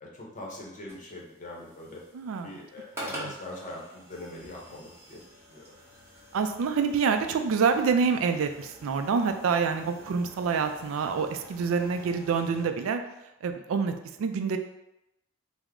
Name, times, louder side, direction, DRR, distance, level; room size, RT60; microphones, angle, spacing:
voice 1, 0.0-2.0 2.4-5.7, left 1 dB, 40° left, -3 dB, 0.7 m, -43 dB
sound 1, 0.9-12.6, equal, 10° right, 0.8 m, -46 dB
voice 2, 2.1-2.5 3.2-3.3 6.3-13.0 13.4-14.6, right 5 dB, 70° right, 7 dB, 0.3 m, -27 dB
3.4 x 2.0 x 3.6 m, 0.89 s
head